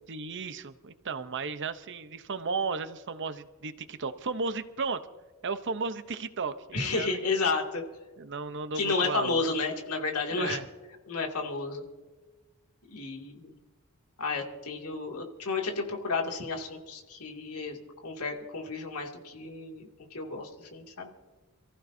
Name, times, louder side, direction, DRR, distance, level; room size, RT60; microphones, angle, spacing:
voice 1, 0.1-5.0 5.4-7.4 8.2-9.4 10.3-10.7, right 4 dB, 55° right, 11 dB, 0.8 m, -34 dB
voice 2, 6.7-7.8 8.7-10.6 11.1-11.8 12.9-13.5 14.2-17.8 18.0-21.1, left 4 dB, 90° left, 1 dB, 2.5 m, -32 dB
28.0 x 15.0 x 2.7 m, 1.3 s
head